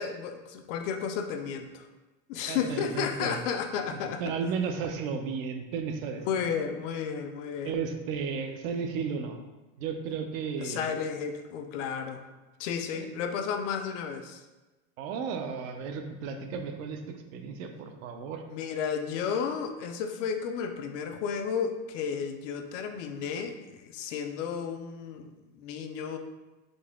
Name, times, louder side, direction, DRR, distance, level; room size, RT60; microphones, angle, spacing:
voice 1, 0.0-1.9 2.3-4.2 6.2-7.8 10.6-12.2 12.6-14.4 18.5-26.2, left 7 dB, 65° left, 7 dB, 0.5 m, -33 dB
voice 2, 2.5-3.4 4.2-6.2 6.5-6.7 7.6-9.4 9.8-10.9 12.9-13.1 15.0-18.4, right 6 dB, 75° right, 6 dB, 0.6 m, -34 dB
4.0 x 2.8 x 3.5 m, 1.1 s
supercardioid pair, 170°, 41 cm